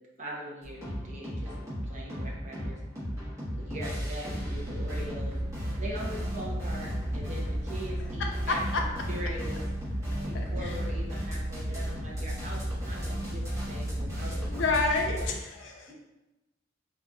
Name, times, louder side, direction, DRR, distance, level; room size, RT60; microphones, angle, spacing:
voice 1, 0.2-1.5 1.8-2.8 3.6-5.4 5.8-9.6 10.2-14.5 15.9-16.0, equal, 35° right, -2 dB, 0.6 m, -41 dB
sound 1, 0.6-15.3, equal, 15° right, 1.1 m, -33 dB
voice 2, 10.3-10.7 14.3-15.9, left 3 dB, 65° left, 2 dB, 0.5 m, -29 dB
3.8 x 2.4 x 2.3 m, 1.0 s
head